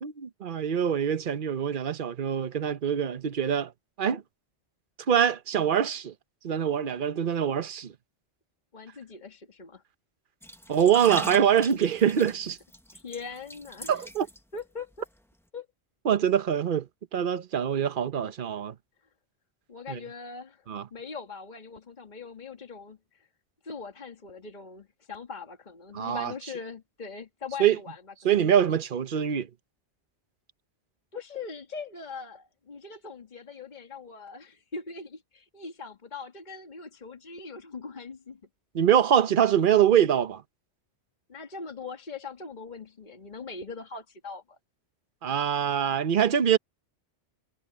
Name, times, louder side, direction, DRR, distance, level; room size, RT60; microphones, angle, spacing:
voice 1, 0.0-3.7 4.0-4.2 5.1-6.1 6.4-7.9 10.7-12.6 13.9-14.3 16.0-18.7 19.9-20.0 20.7-20.9 25.9-26.3 27.6-27.8 28.2-29.5 38.7-40.4 45.2-46.6, right 9 dB, 50° right, 1.0 m, -24 dB
voice 2, 8.7-9.8 12.9-14.0 14.5-15.1 15.5-15.7 19.7-23.3 23.6-28.0 31.1-38.4 41.3-44.6, left 4 dB, 40° left, 1.9 m, -41 dB
sound 1, 10.4-14.6 14.9-15.1, equal, ahead, 0.8 m, -42 dB
omnidirectional pair, 1.2 m